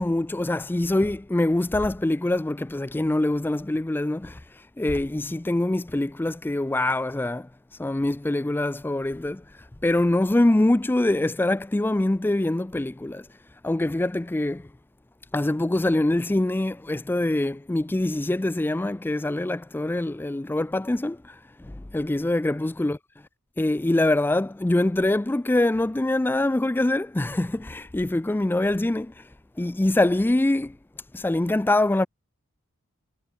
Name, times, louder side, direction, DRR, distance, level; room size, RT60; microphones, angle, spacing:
voice 1, 0.0-4.4 4.8-7.5 7.8-9.4 9.8-13.3 13.6-14.7 15.3-23.0 23.6-29.2 29.6-30.8 31.1-32.1, left 1 dB, 10° left, 0.3 m, -24 dB
head